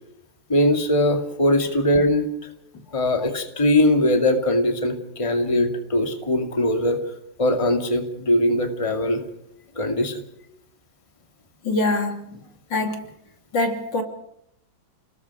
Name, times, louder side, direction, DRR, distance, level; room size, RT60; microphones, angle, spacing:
voice 1, 0.5-2.3 2.9-7.0 7.4-9.2 9.8-10.2, left 1 dB, 15° left, 5 dB, 2.4 m, -21 dB
voice 2, 11.6-12.2 12.7-13.0 13.5-14.0, left 2 dB, 65° left, 5 dB, 3.4 m, -23 dB
30.0 x 20.0 x 4.8 m, 0.77 s
omnidirectional pair, 2.1 m